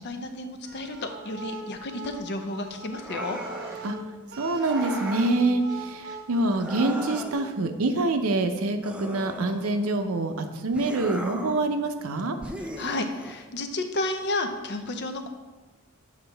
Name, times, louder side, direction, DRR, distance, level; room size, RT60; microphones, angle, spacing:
voice 1, 0.0-3.4 12.8-15.3, left 2 dB, 55° left, 6 dB, 0.6 m, -32 dB
sound 1, 0.6-7.3, right 3 dB, 50° right, 1.0 m, -41 dB
sound 2, 2.9-3.9 4.6-5.4 6.5-7.6 8.8-10.0 10.7-11.7 12.4-13.4, equal, 5° right, 0.4 m, -38 dB
voice 2, 4.4-12.4, right 2 dB, 80° right, 7 dB, 0.6 m, -26 dB
7.3 x 5.1 x 3.4 m, 1.3 s
head